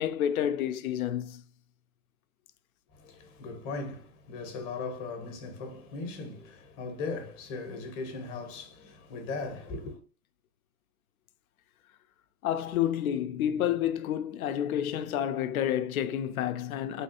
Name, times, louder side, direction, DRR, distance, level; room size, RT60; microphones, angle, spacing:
voice 1, 0.0-1.4 12.4-17.0, left 10 dB, 65° left, 0.5 m, -29 dB
voice 2, 2.9-10.0, left 3 dB, 30° left, 0.8 m, -38 dB
3.3 x 2.3 x 2.7 m
hypercardioid pair, 105°, 46 cm